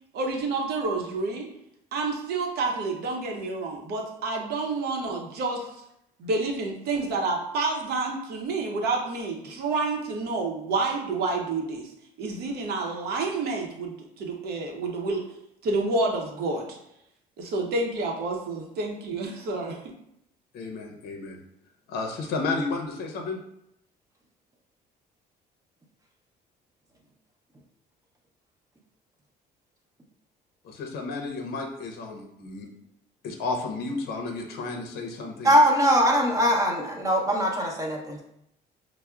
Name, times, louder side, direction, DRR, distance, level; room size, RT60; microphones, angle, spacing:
voice 1, 0.1-1.5 1.9-5.7 6.2-11.9 12.2-15.2 15.6-16.8 17.4-19.8, right 3 dB, 70° right, 1 dB, 0.7 m, -29 dB
voice 2, 20.5-21.4 21.9-23.4 30.6-32.7 33.2-35.6, left 3 dB, 65° left, 3 dB, 0.6 m, -32 dB
voice 3, 35.4-38.2, equal, 20° right, 0 dB, 0.8 m, -21 dB
5.5 x 2.0 x 2.3 m, 0.79 s
cardioid pair, 110°, 17 cm